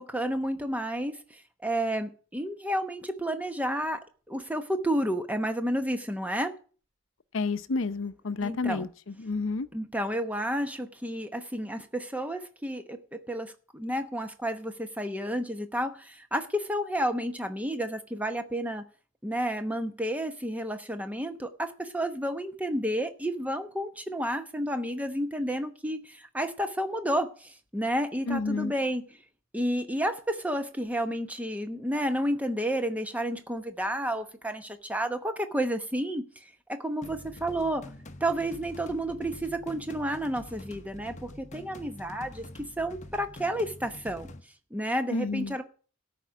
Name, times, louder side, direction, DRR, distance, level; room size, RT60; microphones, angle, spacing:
voice 1, 0.0-6.6 8.4-8.9 9.7-18.8 19.2-29.0 29.5-37.8 38.2-44.3 44.7-45.6, equal, 5° right, 0.9 m, -31 dB
voice 2, 7.3-9.7 28.3-28.7 45.1-45.6, left 3 dB, 70° left, 0.7 m, -30 dB
sound 1, 37.0-44.4, left 1 dB, 35° left, 0.8 m, -46 dB
13.5 x 5.1 x 8.2 m
head